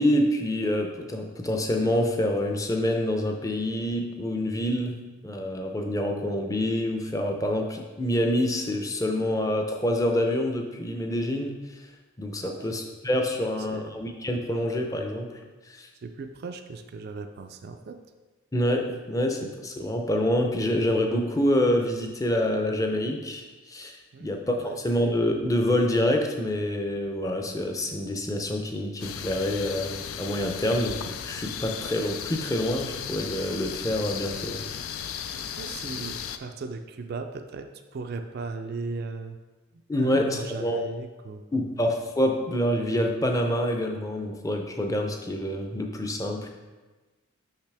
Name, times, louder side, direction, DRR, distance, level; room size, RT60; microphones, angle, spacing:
voice 1, 0.0-11.6 12.2-15.3 15.7-15.9 18.5-34.7 39.9-40.8 41.5-46.5, left 1 dB, 15° left, 3 dB, 0.5 m, -27 dB
voice 2, 12.4-12.7 13.7-14.0 16.0-18.0 24.1-24.8 35.5-39.4 40.0-41.4 41.7-41.8, right 4 dB, 50° right, 6 dB, 0.3 m, -37 dB
sound 1, 29.0-36.4, left 8 dB, 85° left, 0.4 m, -36 dB
6.0 x 5.7 x 3.4 m, 1.2 s
head